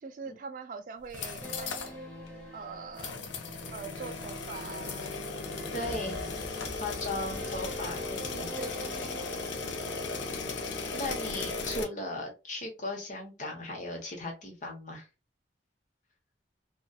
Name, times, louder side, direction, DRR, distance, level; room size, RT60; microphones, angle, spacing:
voice 1, 0.0-2.1 2.5-3.2 3.7-5.2 6.0-6.4 7.1-7.4 8.3-9.2 9.6-9.9, right 4 dB, 45° right, 0.3 m, -44 dB
sound 1, 1.0-1.9 2.3-2.4 3.0-11.8, left 4 dB, 70° left, 0.5 m, -37 dB
sound 2, 1.4-11.2, equal, 5° left, 0.9 m, -46 dB
voice 2, 5.7-6.1 6.8-8.5 10.9-15.1, left 1 dB, 40° left, 0.9 m, -37 dB
sound 3, 5.8-9.6 9.8-9.9, left 1 dB, 20° left, 0.4 m, -47 dB
2.7 x 2.3 x 2.3 m
head